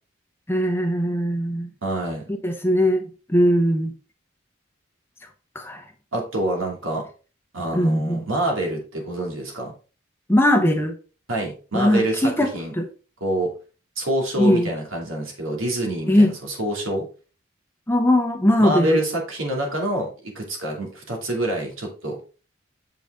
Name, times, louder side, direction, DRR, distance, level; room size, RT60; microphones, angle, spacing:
voice 1, 0.5-1.7 2.4-3.0 3.3-3.9 5.5-5.8 7.7-8.2 10.3-10.9 11.7-12.9 14.4-14.7 16.1-16.3 17.9-19.0, equal, 10° left, 0.7 m, -20 dB
voice 2, 1.8-2.2 6.1-7.1 7.5-9.7 11.3-12.7 13.2-13.5 14.0-17.1 18.6-22.2, right 1 dB, 80° right, 2.7 m, -26 dB
7.7 x 5.4 x 3.7 m
head